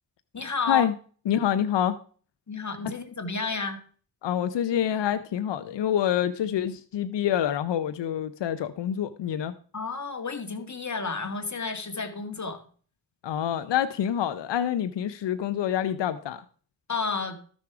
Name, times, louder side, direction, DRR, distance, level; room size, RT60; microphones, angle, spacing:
voice 1, 0.3-0.9 2.5-3.8 9.7-12.6 16.9-17.4, left 4 dB, 40° left, 6 dB, 1.9 m, -31 dB
voice 2, 1.3-2.0 4.2-9.5 13.2-16.4, left 10 dB, 85° left, 11 dB, 0.6 m, -26 dB
13.0 x 6.4 x 4.7 m, 0.43 s
cardioid pair, 40°, 42 cm